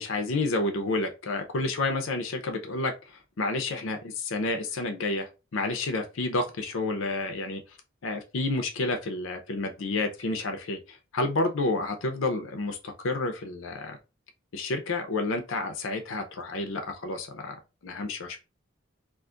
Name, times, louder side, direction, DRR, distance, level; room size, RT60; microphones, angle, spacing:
voice 1, 0.0-2.9 3.4-7.6 8.0-10.8 11.1-14.0 14.5-18.4, left 2 dB, 70° left, 6 dB, 0.6 m, -30 dB
2.5 x 2.4 x 3.6 m, 0.29 s
head